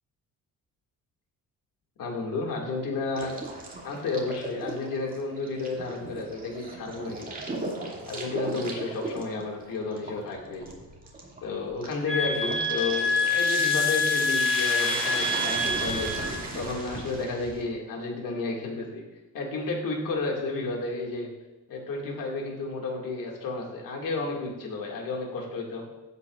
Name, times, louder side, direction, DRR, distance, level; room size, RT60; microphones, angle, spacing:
voice 1, 2.0-3.4 3.8-7.4 8.1-10.7 11.4-19.0 19.3-21.3 21.7-25.9, left 3 dB, 75° left, 0 dB, 2.1 m, -32 dB
sound 1, 3.2-17.6, right 2 dB, 25° right, 2.3 m, -35 dB
sound 2, 12.1-16.4, left 4 dB, 40° left, 2.7 m, -26 dB
15.5 x 8.1 x 2.4 m, 1.1 s
cardioid pair, 125°, 33 cm